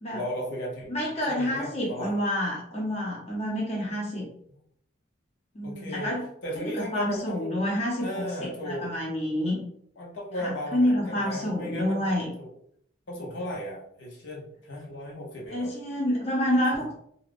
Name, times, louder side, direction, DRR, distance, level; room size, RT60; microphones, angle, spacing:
voice 1, 0.1-1.0 1.3-2.1 5.6-6.1 6.4-7.6 8.0-8.9 10.0-12.0 12.4-12.5 13.1-15.7, equal, 75° left, -4 dB, 0.9 m, -35 dB
voice 2, 0.9-4.3 5.5-6.3 6.6-9.6 10.3-12.3 15.5-16.9, equal, 35° left, -4 dB, 0.7 m, -28 dB
2.4 x 2.4 x 3.3 m, 0.69 s
head